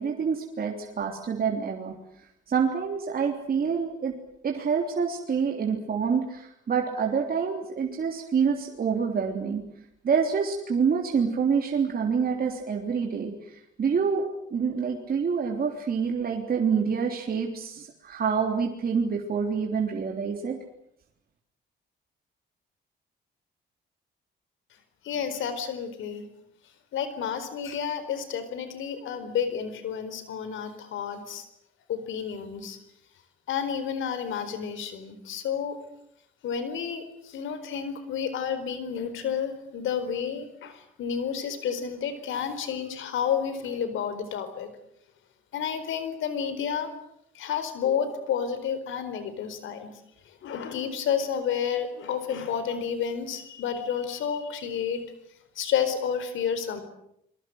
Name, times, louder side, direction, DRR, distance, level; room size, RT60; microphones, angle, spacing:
voice 1, 0.0-1.9 2.5-4.1 4.4-9.6 10.0-13.3 13.8-14.2 14.5-20.6, right 6 dB, 50° right, 1 dB, 3.4 m, -27 dB
voice 2, 25.0-26.2 26.9-31.5 31.9-32.8 33.5-35.8 36.4-44.7 45.5-46.9 47.3-49.9 50.4-55.0 55.6-56.8, left 7 dB, 80° left, 11 dB, 4.5 m, -30 dB
28.5 x 22.5 x 7.9 m, 0.76 s
cardioid pair, 90°, 20 cm